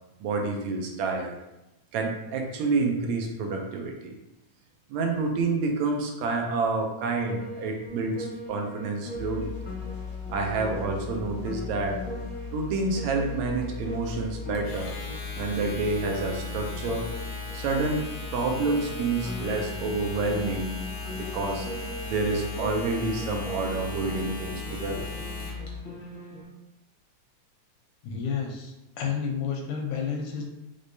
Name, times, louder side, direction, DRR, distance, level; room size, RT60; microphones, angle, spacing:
voice 1, 0.2-1.3 1.9-4.2 4.9-9.5 10.3-12.0 12.5-14.9 15.3-17.1 17.5-18.1 18.3-20.7 21.1-21.7 22.1-25.1, right 3 dB, 80° right, 2 dB, 1.9 m, -28 dB
Piano, 7.3-26.4, equal, 50° left, 0.9 m, -41 dB
sound 1, 9.1-25.8, left 6 dB, 50° right, 2.1 m, -38 dB
Domestic sounds home sounds, 14.5-25.7, left 1 dB, 65° left, 1.3 m, -40 dB
voice 2, 28.0-30.4, left 6 dB, 85° left, 1 dB, 2.2 m, -31 dB
5.2 x 3.3 x 2.7 m, 0.93 s
omnidirectional pair, 3.3 m